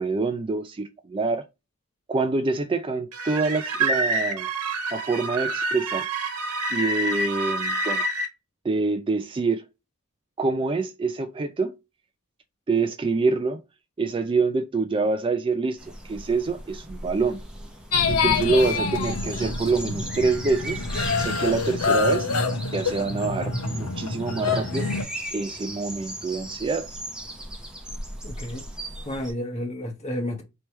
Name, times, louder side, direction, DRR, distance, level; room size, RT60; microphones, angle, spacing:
voice 1, 0.0-1.5 2.1-4.5 4.9-6.1 6.7-8.0 8.6-9.7 10.4-11.7 12.7-13.6 14.0-15.8 16.0-17.4 18.1-20.8 21.2-22.3 22.7-24.9 25.3-26.9, right 3 dB, 25° right, 0.3 m, -26 dB
sound 1, 3.1-8.3, right 2 dB, 80° right, 1.1 m, -27 dB
sound 2, 15.8-29.3, right 1 dB, 5° right, 0.8 m, -38 dB
sound 3, 17.9-25.0, left 4 dB, 80° left, 0.9 m, -26 dB
voice 2, 28.2-28.6 29.0-30.4, left 1 dB, 30° left, 1.0 m, -31 dB
3.3 x 3.0 x 4.3 m
head